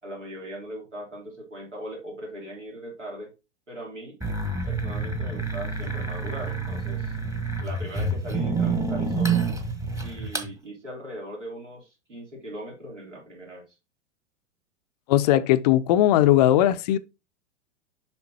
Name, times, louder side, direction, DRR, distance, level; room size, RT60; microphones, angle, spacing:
voice 1, 0.0-3.3 3.7-4.2 4.6-7.2 7.6-9.4 10.0-13.8, right 1 dB, 80° right, 3.4 m, -39 dB
sound 1, 4.2-10.5, right 4 dB, 10° right, 1.1 m, -28 dB
voice 2, 15.1-17.0, left 13 dB, 35° left, 0.5 m, -19 dB
7.4 x 5.7 x 2.8 m
figure-of-eight pair, 100°, 36 cm